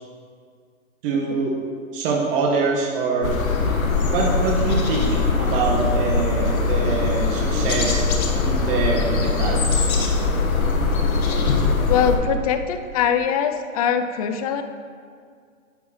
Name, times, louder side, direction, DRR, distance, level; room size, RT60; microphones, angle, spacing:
voice 1, 1.0-1.6 1.9-3.3 4.1-8.0 8.4-9.8, right 3 dB, 40° right, -1 dB, 1.5 m, -24 dB
sound 1, 3.2-12.2, left 4 dB, 80° left, 1.6 m, -21 dB
voice 2, 11.9-14.6, left 7 dB, 30° left, 9 dB, 0.5 m, -22 dB
10.5 x 5.2 x 5.9 m, 2.1 s
hypercardioid pair, 135°, 41 cm